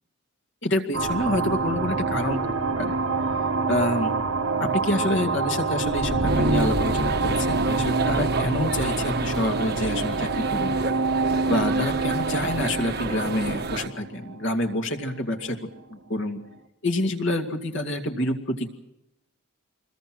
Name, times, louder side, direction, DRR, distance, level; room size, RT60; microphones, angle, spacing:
voice 1, 0.6-2.9 3.7-4.2 4.6-10.8 11.5-15.6 15.9-16.4 16.8-18.7, left 1 dB, 55° left, 5 dB, 2.3 m, -27 dB
sound 1, 0.9-15.1, right 3 dB, 70° right, 1.5 m, -26 dB
sound 2, 6.3-13.9, right 3 dB, 45° right, 1.2 m, -32 dB
26.5 x 21.0 x 6.2 m, 0.89 s
head